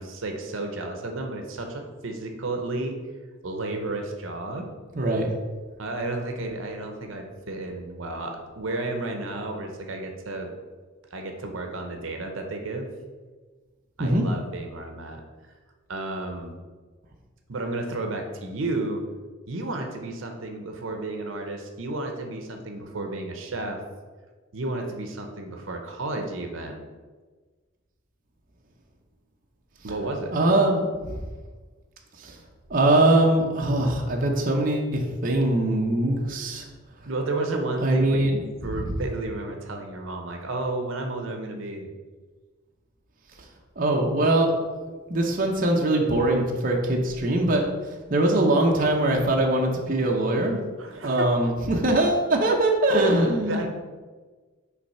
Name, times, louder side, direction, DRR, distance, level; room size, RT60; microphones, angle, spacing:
voice 1, 0.0-3.0 3.4-4.7 5.8-10.5 11.1-12.9 14.0-15.2 15.9-16.5 17.5-19.0 19.5-23.8 24.5-26.9 29.8-30.3 37.0-38.2 38.6-41.9 50.8-51.4 52.9-53.7, right 2 dB, 75° right, 3 dB, 0.8 m, -32 dB
voice 2, 4.9-5.3 14.0-14.2 30.3-31.2 32.2-32.4 32.7-36.6 37.8-38.4 43.8-44.5 44.9-47.6 48.1-50.6 51.0-53.7, right 1 dB, 45° right, 0 dB, 0.8 m, -22 dB
5.9 x 3.3 x 5.4 m, 1.4 s
head